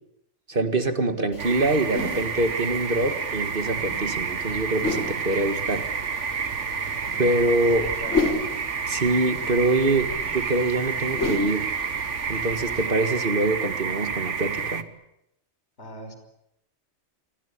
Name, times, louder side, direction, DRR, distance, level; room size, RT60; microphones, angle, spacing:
voice 1, 0.5-5.9 7.2-7.9 8.9-11.7 12.3-14.9, right 2 dB, 50° right, 8 dB, 2.0 m, -24 dB
sound 1, 1.3-12.9, left 3 dB, 85° left, 5.3 m, -34 dB
sound 2, 1.4-14.8, right 6 dB, 80° right, 1.7 m, -29 dB
voice 2, 6.8-7.6 8.0-8.4 15.8-16.1, equal, 65° left, 7 dB, 5.8 m, -42 dB
28.0 x 23.0 x 8.6 m, 0.82 s
omnidirectional pair, 1.2 m